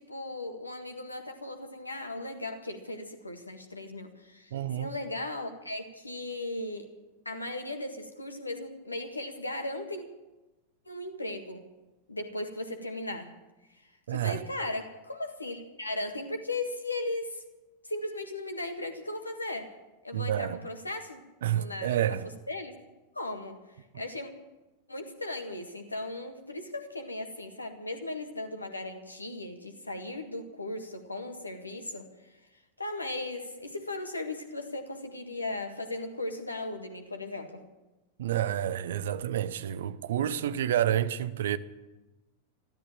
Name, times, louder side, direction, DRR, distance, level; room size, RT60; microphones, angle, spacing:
voice 1, 0.0-6.9 7.2-10.1 10.8-11.6 12.1-13.3 14.1-17.4 17.8-19.7 20.0-21.2 21.5-22.8 23.1-23.6 23.9-24.3 24.9-32.1 32.8-37.6, left 2 dB, 80° left, 1.7 m, -37 dB
voice 2, 4.5-4.9 14.1-14.4 20.1-20.6 21.4-22.3 38.2-41.6, right 11 dB, 60° right, 0.7 m, -29 dB
13.5 x 12.5 x 7.5 m
figure-of-eight pair, 90°, 0 cm